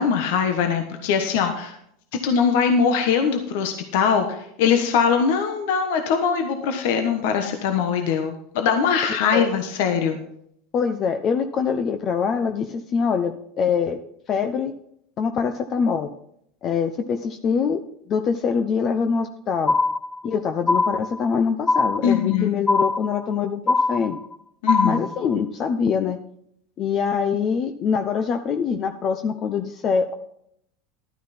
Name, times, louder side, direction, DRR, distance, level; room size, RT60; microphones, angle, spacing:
voice 1, 0.0-1.8 2.2-10.2 22.0-22.5 24.6-25.1, left 6 dB, 70° left, 6 dB, 1.2 m, -21 dB
voice 2, 10.7-14.0 14.3-14.7 15.2-16.1 16.6-17.8 18.1-19.7 20.2-24.2 24.8-26.2 26.8-30.1, left 6 dB, 40° left, 7 dB, 0.8 m, -24 dB
sound 1, 19.7-20.3 20.7-21.3 21.7-22.3 22.7-23.3 23.7-24.3 24.7-25.3, left 3 dB, 15° left, 0.4 m, -22 dB
12.5 x 9.3 x 4.3 m, 0.71 s
hypercardioid pair, 105°, 0 cm